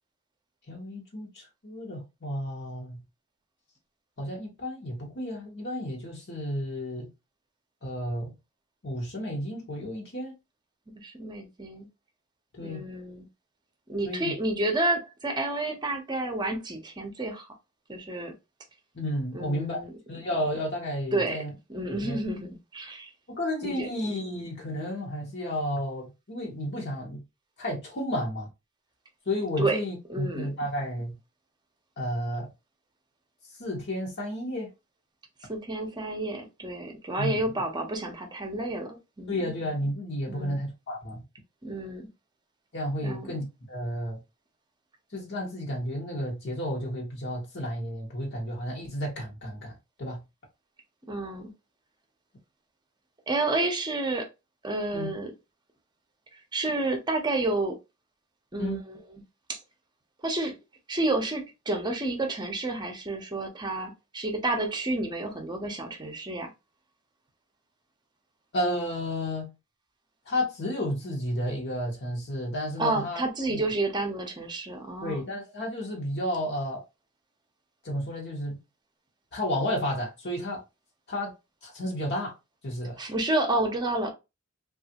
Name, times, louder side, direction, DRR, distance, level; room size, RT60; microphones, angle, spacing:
voice 1, 0.7-3.0 4.2-7.1 7.8-8.3 8.8-10.3 12.5-12.8 14.0-14.3 18.9-19.8 20.1-21.5 22.0-22.2 23.3-27.2 27.6-28.5 29.3-31.2 32.0-32.5 33.6-34.7 37.2-37.4 39.3-41.2 42.7-44.2 45.1-50.2 54.9-55.1 58.6-58.8 68.5-69.5 70.3-73.2 73.5-73.6 75.0-76.8 77.8-78.6 79.3-80.6 81.1-81.3 81.6-82.3 82.6-83.0, equal, 55° left, 1.0 m, -32 dB
voice 2, 11.0-11.9 12.6-13.3 13.9-17.5 17.9-18.3 19.3-19.9 21.1-21.4 21.7-23.1 23.6-23.9 29.6-29.8 30.1-30.5 35.5-39.4 40.3-40.6 41.6-42.1 43.0-43.3 51.1-51.5 53.3-54.3 54.6-55.3 56.5-57.8 58.5-59.0 59.5-59.6 60.2-60.6 60.9-66.5 72.8-75.3 83.0-84.1, right 2 dB, 20° right, 0.7 m, -30 dB
3.3 x 2.4 x 2.8 m
head